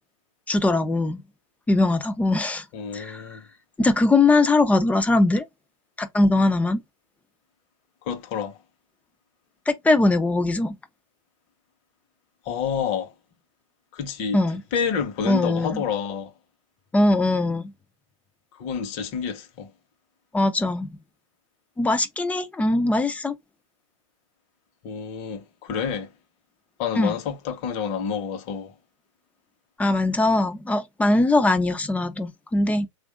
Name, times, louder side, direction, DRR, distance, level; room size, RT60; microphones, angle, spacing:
voice 1, 0.5-1.2 1.7-2.6 2.9-3.2 3.8-5.4 6.0-6.8 9.7-10.7 14.3-14.6 15.3-15.8 16.9-17.7 20.3-20.9 21.8-23.3 27.0-27.2 29.8-32.9, left 2 dB, 10° left, 0.6 m, -21 dB
voice 2, 2.7-3.4 8.0-8.6 12.4-13.1 13.9-14.4 14.7-16.3 18.6-19.7 24.8-26.1 26.8-28.7, left 7 dB, 40° left, 1.1 m, -29 dB
3.4 x 2.5 x 3.4 m
hypercardioid pair, 115°, 17 cm